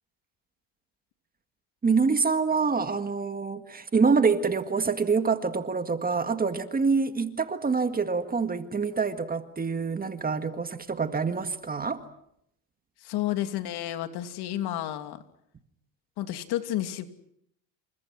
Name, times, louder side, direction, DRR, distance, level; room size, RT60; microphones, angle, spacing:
voice 1, 1.8-12.0, right 5 dB, 20° right, 1.9 m, -26 dB
voice 2, 13.0-15.2 16.2-17.1, left 13 dB, 60° left, 2.8 m, -31 dB
29.0 x 27.0 x 6.1 m
supercardioid pair, 115°, 44 cm